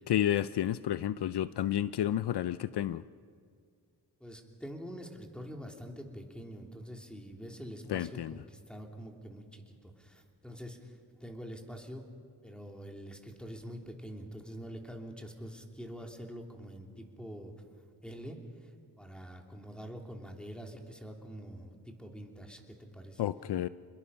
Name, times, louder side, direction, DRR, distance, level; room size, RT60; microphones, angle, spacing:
voice 1, 0.1-3.0 7.9-8.4 23.2-23.7, left 11 dB, 75° left, 15 dB, 0.5 m, -31 dB
voice 2, 4.2-12.0 12.4-17.5 18.0-18.7 19.0-23.3, equal, ahead, 1 dB, 3.1 m, -45 dB
28.0 x 21.5 x 5.7 m, 2.1 s
cardioid pair, 75°, 41 cm